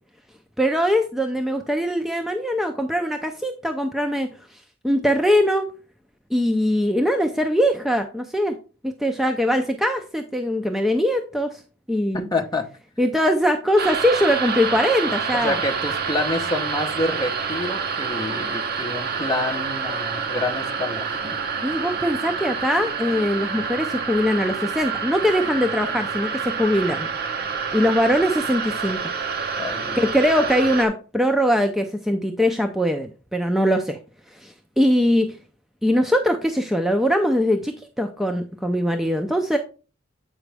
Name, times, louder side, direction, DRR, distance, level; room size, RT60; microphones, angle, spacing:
voice 1, 0.6-5.7 6.3-8.5 8.8-11.6 11.9-12.3 13.0-15.6 21.6-27.1 27.7-29.0 30.0-34.0 34.3-35.3 35.8-39.6, equal, ahead, 4 dB, 0.4 m, -22 dB
voice 2, 12.1-12.7 15.3-21.4 29.6-30.0, left 2 dB, 20° left, 2 dB, 0.9 m, -27 dB
sound 1, 13.8-30.9, right 5 dB, 50° right, 0.8 m, -28 dB
8.1 x 5.0 x 3.3 m, 0.34 s
head